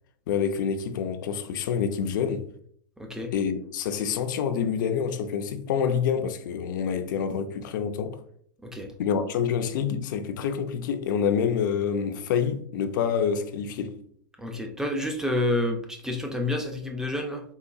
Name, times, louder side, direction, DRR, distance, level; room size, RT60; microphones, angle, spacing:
voice 1, 0.3-2.5 3.3-8.2 9.0-14.0, left 7 dB, 65° left, 0.4 m, -27 dB
voice 2, 3.0-3.3 8.6-8.9 14.4-17.4, left 1 dB, 5° right, 0.3 m, -29 dB
3.8 x 2.8 x 2.3 m
supercardioid pair, 140°, 11 cm